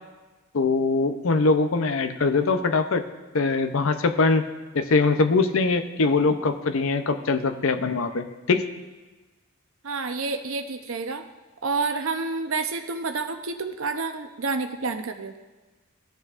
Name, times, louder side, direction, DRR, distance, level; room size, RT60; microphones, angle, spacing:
voice 1, 0.5-3.0 3.3-4.4 4.7-8.6, left 3 dB, 65° left, 9 dB, 0.6 m, -22 dB
voice 2, 9.8-11.2 11.6-15.3, right 4 dB, 65° right, 6 dB, 0.7 m, -29 dB
15.0 x 6.8 x 2.5 m, 1.2 s
head